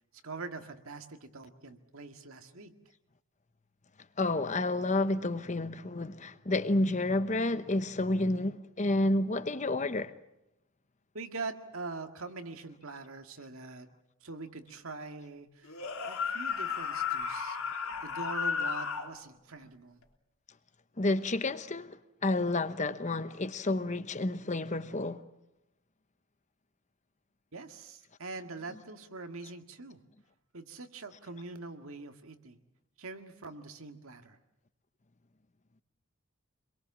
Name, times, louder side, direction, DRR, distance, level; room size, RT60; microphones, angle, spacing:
voice 1, 0.2-2.7 11.1-13.9 14.2-17.6 18.0-20.0 27.5-30.0 30.5-32.6 33.0-34.4, right 3 dB, 75° right, 1.9 m, -43 dB
voice 2, 4.2-10.1 21.0-25.2, left 2 dB, 35° left, 1.0 m, -30 dB
sound 1, 15.7-19.1, left 6 dB, 85° left, 3.3 m, -33 dB
26.5 x 22.0 x 7.3 m
head